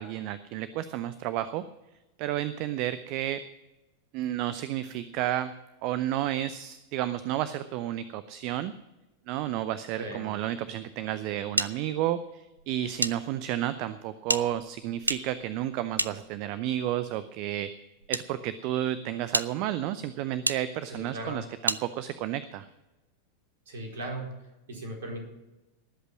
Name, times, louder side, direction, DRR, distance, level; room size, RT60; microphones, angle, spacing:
voice 1, 0.0-1.6 2.2-3.4 4.1-5.5 5.8-8.7 9.3-17.7 18.1-22.7, right 12 dB, 45° right, 14 dB, 0.6 m, -31 dB
voice 2, 10.0-10.3 20.9-21.5 23.7-24.3 24.7-25.2, right 1 dB, 60° right, 1 dB, 4.3 m, -37 dB
sound 1, 11.6-13.1 13.4-13.5 14.2-16.7 17.5-18.2 18.8-18.9 19.3-19.5 20.4-20.6 21.7-21.8, right 2 dB, 85° right, 0.5 m, -31 dB
19.0 x 8.2 x 6.0 m, 1.0 s
figure-of-eight pair, 90°, 0 cm